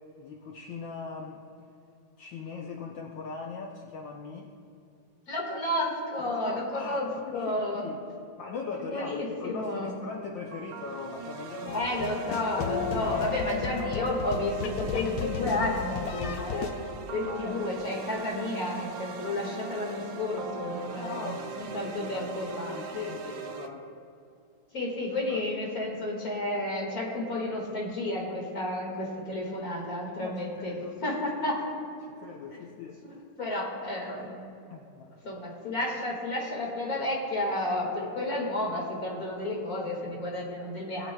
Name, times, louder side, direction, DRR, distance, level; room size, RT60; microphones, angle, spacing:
voice 1, 0.2-1.4 2.2-4.5 6.2-8.0 8.4-11.9 13.1-13.4 17.3-17.7 20.9-24.0 25.3-25.4 30.2-30.9 32.1-33.2 34.7-35.2, left 5 dB, 70° left, 0 dB, 1.3 m, -40 dB
voice 2, 5.3-7.9 8.8-10.0 11.7-16.8 17.1-22.8 24.7-31.6 32.5-32.6 33.0-34.4 35.2-41.1, left 1 dB, 45° left, -3 dB, 2.2 m, -31 dB
sound 1, 10.5-23.7, right 6 dB, 75° right, 1.4 m, -41 dB
sound 2, 11.7-16.7, left 6 dB, 85° left, 1.6 m, -34 dB
20.5 x 8.6 x 2.2 m, 2.6 s
omnidirectional pair, 2.2 m